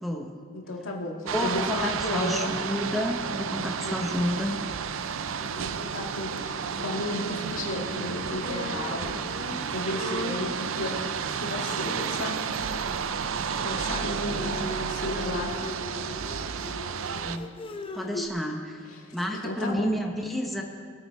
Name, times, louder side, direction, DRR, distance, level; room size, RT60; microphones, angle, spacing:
voice 1, 0.0-0.4 1.2-4.6 17.2-17.5 17.9-18.8 19.1-20.6, equal, ahead, 1 dB, 0.9 m, -30 dB
voice 2, 0.5-2.5 3.8-3.9 5.5-9.3 9.5-12.4 13.6-15.5 18.9-19.9, left 1 dB, 85° left, 0 dB, 1.9 m, -33 dB
sound 1, 1.3-17.4, right 6 dB, 70° right, 0.5 m, -32 dB
Bowed string instrument, 5.3-18.3, left 2 dB, 25° left, 0.7 m, -41 dB
20.5 x 8.6 x 4.8 m, 2.2 s
head